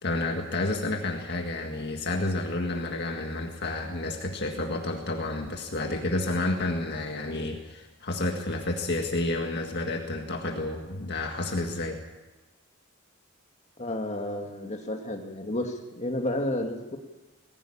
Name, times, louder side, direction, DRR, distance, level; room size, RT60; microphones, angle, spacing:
voice 1, 0.0-12.0, left 2 dB, 50° left, 3 dB, 1.8 m, -30 dB
voice 2, 13.8-17.0, left 1 dB, 35° left, 2 dB, 2.3 m, -31 dB
20.0 x 16.0 x 8.8 m, 1.2 s
head